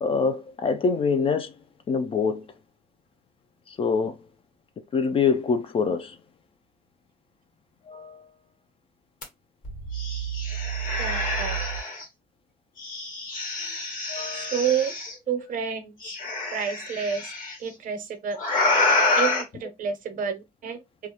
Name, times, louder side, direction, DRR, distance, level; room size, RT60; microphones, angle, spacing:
voice 1, 0.0-1.5 1.9-2.4 3.7-4.2 4.9-6.2 7.9-8.2 14.1-14.5, left 5 dB, 35° left, 0.4 m, -25 dB
sound 1, 9.2-9.3 9.6-12.0 12.8-15.1 16.0-17.5 18.4-19.4, left 2 dB, 50° left, 1.2 m, -27 dB
voice 2, 11.0-11.6 14.3-14.9 15.3-16.1 16.5-17.3 17.6-18.4 19.2-20.8, right 7 dB, 55° right, 0.6 m, -29 dB
2.3 x 2.0 x 2.8 m
cardioid pair, 110°, 17 cm